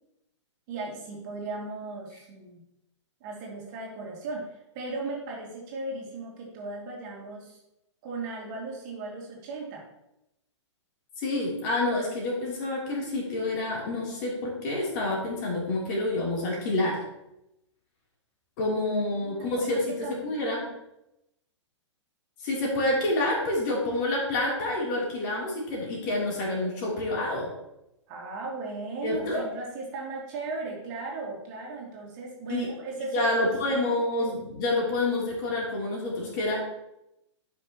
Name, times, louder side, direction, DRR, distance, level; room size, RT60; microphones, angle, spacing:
voice 1, 0.7-2.6 3.2-7.6 8.0-9.8 19.1-20.4 28.1-34.0, right 3 dB, 40° right, -2 dB, 2.4 m, -37 dB
voice 2, 11.2-17.0 18.6-19.9 20.2-20.7 22.4-27.5 29.0-29.4 32.5-32.7 33.1-36.6, left 2 dB, 40° left, -3 dB, 3.3 m, -28 dB
12.0 x 5.9 x 3.0 m, 0.86 s
figure-of-eight pair, 115°, 16 cm